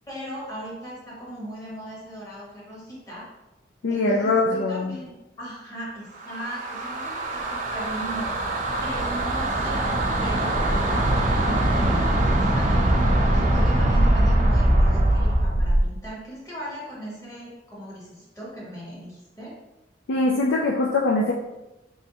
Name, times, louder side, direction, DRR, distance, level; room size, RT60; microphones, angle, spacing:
voice 1, 0.1-3.3 3.9-5.1 5.4-8.3 8.8-12.8 13.3-19.5, right 1 dB, 20° left, -6 dB, 1.4 m, -38 dB
voice 2, 3.8-5.0 20.1-21.3, left 2 dB, 80° left, -1 dB, 0.4 m, -22 dB
sound 1, 6.2-15.9, right 1 dB, 45° right, 0.5 m, -22 dB
3.4 x 3.1 x 2.9 m, 0.95 s
head